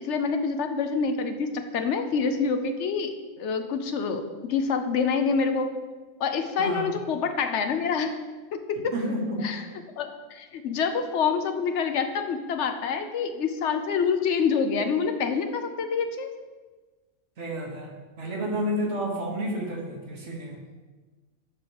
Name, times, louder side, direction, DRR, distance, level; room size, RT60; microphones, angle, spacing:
voice 1, 0.0-5.7 6.2-8.2 8.5-8.9 9.4-9.6 10.0-16.3, left 5 dB, 75° left, 7 dB, 0.9 m, -27 dB
voice 2, 6.6-6.9 8.9-9.5 17.4-20.6, equal, 70° right, -1 dB, 1.6 m, -30 dB
8.6 x 6.2 x 3.0 m, 1.3 s
omnidirectional pair, 1.2 m